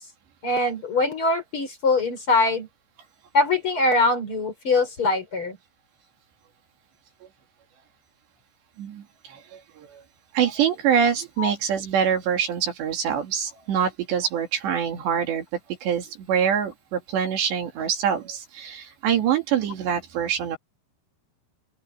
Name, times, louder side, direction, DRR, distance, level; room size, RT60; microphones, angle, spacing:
voice 1, 0.4-2.7 3.3-5.6 11.4-11.5, left 3 dB, 30° left, 4.5 m, -22 dB
voice 2, 8.8-9.4 9.8-9.9 10.3-15.4 15.8-20.6, right 8 dB, 70° right, 4.7 m, -25 dB
omnidirectional pair, 5.3 m